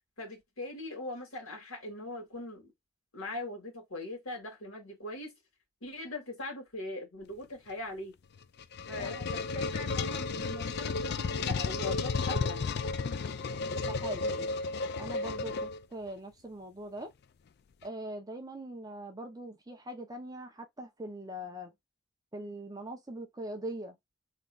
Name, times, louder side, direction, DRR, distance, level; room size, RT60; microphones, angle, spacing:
voice 1, 0.2-2.7 3.1-5.4 5.8-8.2 8.9-12.7, left 2 dB, 80° left, 2.2 m, -41 dB
sound 1, 8.4-16.1, left 4 dB, 50° left, 0.4 m, -33 dB
voice 2, 9.0-9.4 13.9-14.5 15.0-17.1 17.8-21.7 22.3-24.0, right 1 dB, 20° right, 0.8 m, -42 dB
3.8 x 3.2 x 2.4 m
head